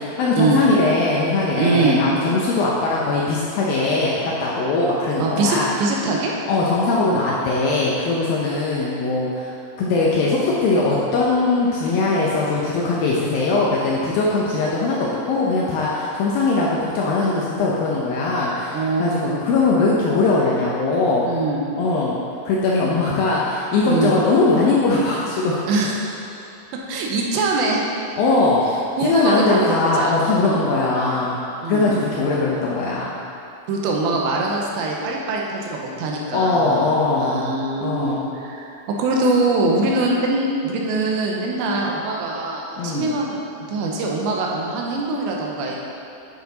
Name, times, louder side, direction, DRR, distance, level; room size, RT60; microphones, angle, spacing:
voice 1, 0.0-5.7 6.5-9.5 9.8-21.2 21.8-22.2 22.5-25.6 28.2-31.4 31.7-33.1 36.3-37.5 37.8-38.3 42.8-43.1, left 3 dB, 75° left, -5 dB, 2.2 m, -20 dB
voice 2, 1.5-2.0 5.2-6.3 7.0-7.3 18.7-19.5 21.2-21.6 23.9-24.1 25.7-26.4 26.9-27.9 29.0-30.1 30.4-30.7 31.6-31.9 33.7-45.8, right 2 dB, 85° right, -1 dB, 3.2 m, -23 dB
9.3 x 6.6 x 4.0 m, 2.9 s
omnidirectional pair, 5.0 m